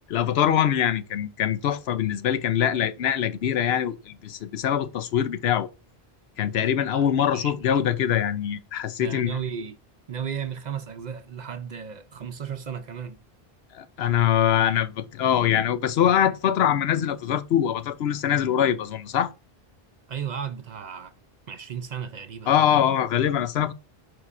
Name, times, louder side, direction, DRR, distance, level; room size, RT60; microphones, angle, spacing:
voice 1, 0.1-5.7 6.4-9.4 13.7-19.3 22.5-23.7, left 9 dB, 85° left, 0.9 m, -23 dB
voice 2, 9.0-9.8 10.1-13.2 20.1-21.1 21.5-22.5, right 8 dB, 55° right, 0.6 m, -34 dB
9.7 x 4.6 x 2.5 m
omnidirectional pair, 1.0 m